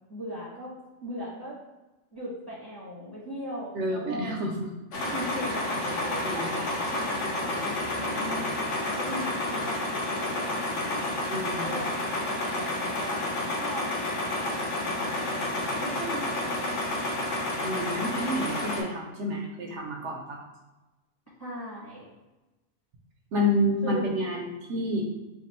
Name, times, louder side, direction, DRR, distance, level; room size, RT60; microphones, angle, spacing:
voice 1, 0.1-1.6 2.1-4.3 5.1-11.1 11.6-13.3 13.5-13.9 14.4-16.6 21.4-22.1 23.8-24.1, equal, 20° left, -7 dB, 1.1 m, -39 dB
voice 2, 3.7-4.5 5.9-6.0 6.2-6.6 11.3-11.7 17.6-20.4 23.3-25.0, left 1 dB, 70° right, 0 dB, 0.8 m, -29 dB
sound 1, 4.9-18.8, left 1 dB, 70° left, 1.0 m, -30 dB
3.5 x 2.4 x 4.2 m, 1.1 s
omnidirectional pair, 1.4 m